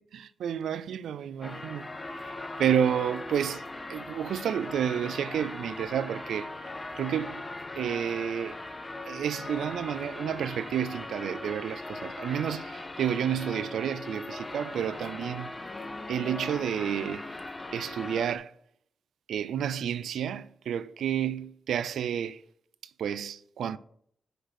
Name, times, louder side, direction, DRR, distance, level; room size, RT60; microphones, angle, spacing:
voice 1, 0.0-6.6 6.9-7.4 7.8-8.6 9.1-15.5 16.1-17.3 17.7-18.5 19.3-22.4 23.0-23.8, right 9 dB, 85° right, 0.4 m, -30 dB
sound 1, 1.4-18.4, left 2 dB, 35° left, 1.0 m, -39 dB
5.9 x 5.0 x 6.5 m
supercardioid pair, 45°, 0 cm